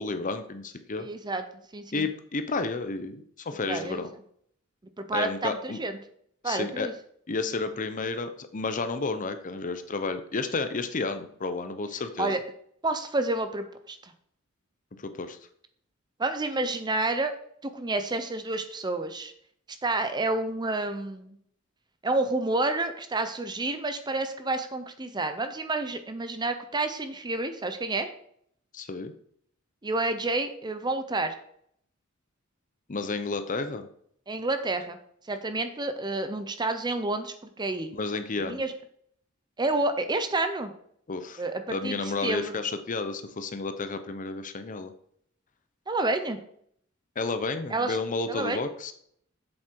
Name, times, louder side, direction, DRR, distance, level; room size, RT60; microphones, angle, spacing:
voice 1, 0.0-1.1 1.9-4.1 5.1-5.8 6.4-6.9 7.3-12.4 14.9-15.4 28.7-29.1 32.9-33.9 37.9-38.6 41.1-41.4 41.7-44.9 47.2-48.9, left 3 dB, 40° left, 9 dB, 0.7 m, -31 dB
voice 2, 1.0-1.4 1.7-2.1 3.6-4.0 5.0-6.0 6.4-6.9 12.2-12.4 12.8-14.1 16.2-17.4 17.6-19.3 19.8-21.4 22.0-28.1 29.8-31.4 34.3-35.0 35.3-37.9 38.4-38.7 39.6-40.7 41.4-42.6 45.9-46.4 47.7-48.0 48.3-48.6, right 2 dB, 20° right, 9 dB, 0.7 m, -29 dB
7.8 x 7.2 x 4.6 m, 0.65 s
head